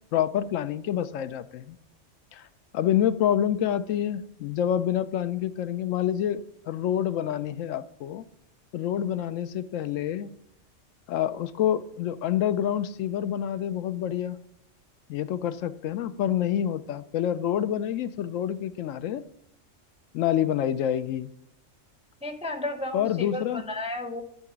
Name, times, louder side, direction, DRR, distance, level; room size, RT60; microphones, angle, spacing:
voice 1, 0.1-1.8 2.3-2.5 2.7-8.2 8.7-10.3 11.1-14.4 15.1-19.2 20.1-21.3 22.9-23.6, left 10 dB, 85° left, 13 dB, 0.9 m, -27 dB
voice 2, 22.2-24.2, left 2 dB, 5° right, 6 dB, 0.5 m, -33 dB
11.0 x 3.8 x 7.3 m, 0.74 s
omnidirectional pair, 1.3 m